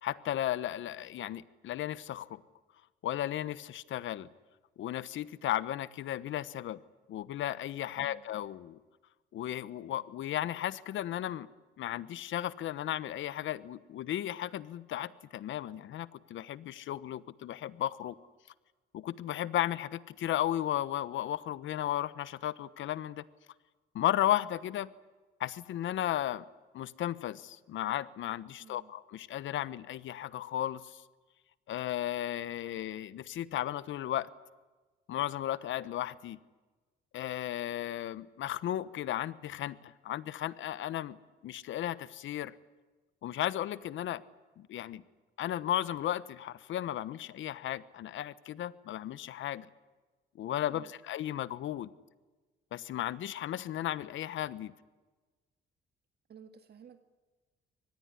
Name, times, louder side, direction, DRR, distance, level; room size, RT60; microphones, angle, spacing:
voice 1, 0.0-2.4 3.0-4.3 4.8-6.8 7.1-8.8 9.3-11.5 11.8-18.2 18.9-23.2 23.9-24.9 25.4-26.4 26.7-31.0 31.7-34.3 35.1-36.4 37.1-41.2 41.4-42.5 43.2-44.2 44.6-45.0 45.4-49.7 50.4-51.9 52.7-54.7, left 12 dB, 75° left, 17 dB, 1.2 m, -35 dB
voice 2, 28.6-28.9 50.6-50.9 56.3-57.0, right 7 dB, 55° right, 8 dB, 2.0 m, -54 dB
24.5 x 20.0 x 9.9 m, 1.3 s
cardioid pair, 90°, 20 cm